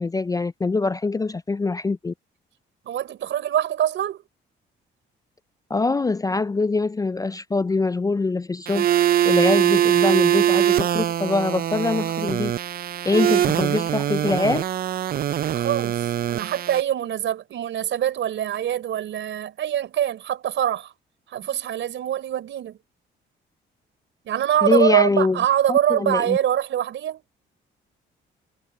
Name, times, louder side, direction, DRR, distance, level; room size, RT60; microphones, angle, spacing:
voice 1, 0.0-2.1 5.7-8.9 9.3-12.5 13.1-14.7 24.6-25.4 25.7-26.4, left 3 dB, 20° left, 0.4 m, -23 dB
voice 2, 2.9-4.2 15.4-20.9 21.3-22.8 24.2-27.2, right 11 dB, 70° right, 4.4 m, -24 dB
sound 1, 8.7-16.8, right 11 dB, 50° right, 0.4 m, -22 dB
cardioid pair, 90°, 20 cm